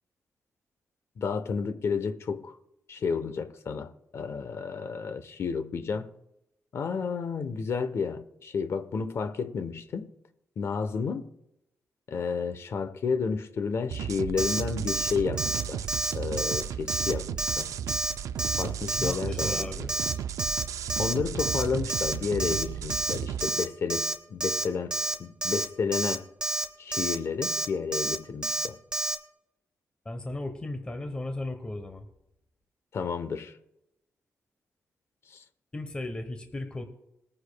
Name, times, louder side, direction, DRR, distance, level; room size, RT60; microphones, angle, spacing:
voice 1, 1.2-2.5 2.9-6.1 6.7-10.1 10.6-11.3 12.1-15.9 16.1-17.7 18.6-19.7 21.0-26.2 26.8-28.8 32.9-33.5 35.3-35.4, left 5 dB, 55° left, 0.9 m, -31 dB
sound 1, 13.9-23.5, right 9 dB, 90° right, 0.4 m, -34 dB
Alarm, 14.4-14.6 14.9-15.1 15.4-15.6 15.9-16.1 16.4-16.6 16.9-17.1 17.4-17.6 17.9-18.1 18.4-18.6 18.9-19.1 19.4-19.6 19.9-20.1 20.4-20.6 20.9-21.1 21.4-21.6 21.9-22.1 22.4-22.6 22.9-23.1 23.4-23.6 23.9-24.1 24.4-24.6 24.9-25.1 25.4-25.7 25.9-26.2 26.4-26.7 26.9-27.2 27.4-27.7 27.9-28.2 28.4-28.7 28.9-29.2, right 2 dB, 15° right, 1.0 m, -29 dB
voice 2, 19.0-19.9 30.0-32.0 35.7-36.8, left 2 dB, 20° left, 1.0 m, -35 dB
21.0 x 9.7 x 2.3 m
wide cardioid pair, 155°, 5 cm